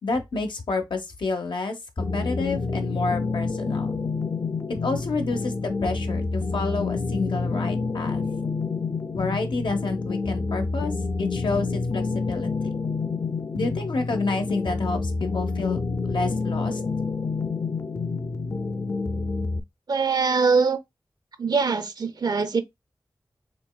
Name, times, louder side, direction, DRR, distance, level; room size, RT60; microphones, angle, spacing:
voice 1, 0.0-4.0 4.7-8.2 9.1-12.5 13.5-16.8, left 3 dB, 80° left, 0.9 m, -29 dB
sound 1, 2.0-19.6, left 4 dB, 40° left, 0.4 m, -28 dB
voice 2, 19.9-20.8 21.4-22.6, right 5 dB, 60° right, 0.6 m, -22 dB
5.1 x 3.1 x 2.2 m
wide cardioid pair, 75°, 8 cm